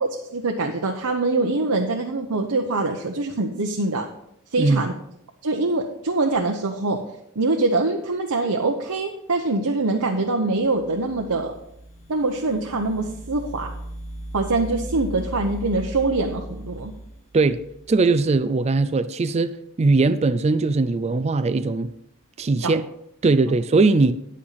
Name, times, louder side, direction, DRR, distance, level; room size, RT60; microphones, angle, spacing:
voice 1, 0.3-4.0 4.5-4.9 5.4-7.0 7.4-11.5 12.1-13.7 14.3-16.9 22.6-22.7, right 3 dB, 85° right, 0.9 m, -24 dB
sound 1, 10.6-18.1, right 1 dB, 40° left, 1.6 m, -37 dB
voice 2, 17.9-21.9 22.4-22.8 23.2-24.1, right 3 dB, 30° right, 0.4 m, -20 dB
9.9 x 8.4 x 4.1 m
head